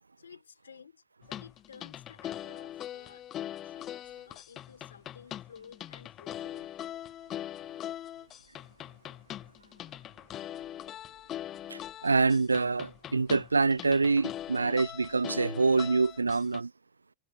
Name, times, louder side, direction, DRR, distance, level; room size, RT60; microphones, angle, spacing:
voice 1, 0.2-3.9 4.2-7.4, left 7 dB, 70° left, 4.3 m, -54 dB
sound 1, 1.2-16.6, left 12 dB, 30° left, 0.8 m, -41 dB
voice 2, 11.7-16.7, right 4 dB, 80° right, 0.5 m, -26 dB
figure-of-eight pair, 90°, 0 cm